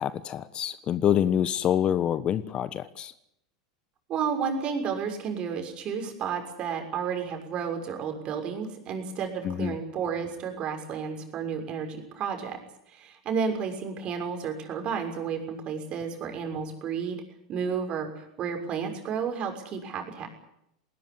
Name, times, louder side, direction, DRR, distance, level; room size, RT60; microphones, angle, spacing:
voice 1, 0.0-3.1 9.4-9.7, left 10 dB, 35° left, 16 dB, 1.2 m, -26 dB
voice 2, 4.1-12.6 12.9-17.2 17.5-20.3, right 6 dB, 40° right, 5 dB, 6.5 m, -32 dB
20.0 x 19.5 x 9.9 m, 0.78 s
hypercardioid pair, 90°, 3 cm